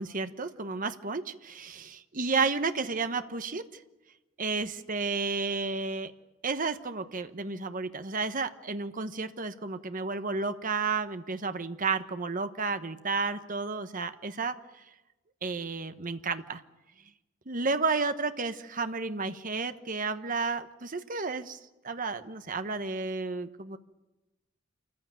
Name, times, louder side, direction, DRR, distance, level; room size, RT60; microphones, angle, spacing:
voice 1, 0.0-3.6 4.4-6.1 6.4-14.5 15.4-16.6 17.5-21.6 21.8-23.8, right 4 dB, 40° right, 10 dB, 1.1 m, -32 dB
27.0 x 15.0 x 9.1 m, 1.1 s
head